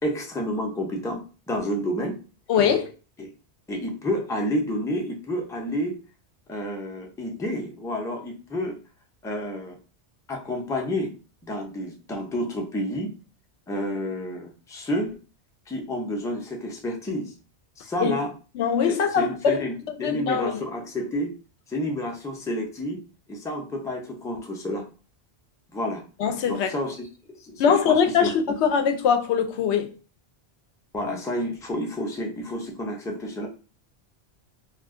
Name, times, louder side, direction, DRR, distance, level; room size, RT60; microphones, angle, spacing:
voice 1, 0.0-2.2 3.2-3.3 3.7-6.0 6.5-8.8 9.2-9.8 10.3-11.1 11.5-13.1 13.7-15.1 15.7-17.3 17.8-18.3 18.9-19.7 20.0-21.3 21.7-23.0 23.3-24.9 25.7-26.0 26.5-27.1 27.3-28.3 30.9-33.5, equal, 5° left, 0.4 m, -30 dB
voice 2, 2.5-2.9 18.0-18.1 18.6-19.6 20.0-20.6 26.2-26.7 27.6-29.9, left 7 dB, 85° left, 0.8 m, -22 dB
2.4 x 2.3 x 3.6 m
omnidirectional pair, 1.1 m